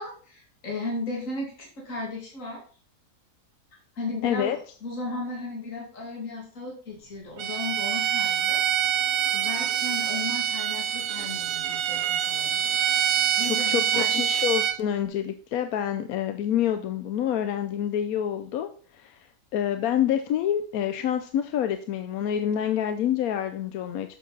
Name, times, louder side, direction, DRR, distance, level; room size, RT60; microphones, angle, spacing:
voice 1, 0.0-2.6 4.0-8.6 9.3-12.8 13.4-14.1, left 2 dB, 50° left, -1 dB, 2.7 m, -35 dB
voice 2, 4.2-4.6 13.4-19.3 19.5-24.2, left 10 dB, 70° left, 9 dB, 1.0 m, -27 dB
Bowed string instrument, 7.4-14.8, right 10 dB, 70° right, 0.9 m, -25 dB
7.3 x 7.1 x 4.0 m, 0.42 s
omnidirectional pair, 1.7 m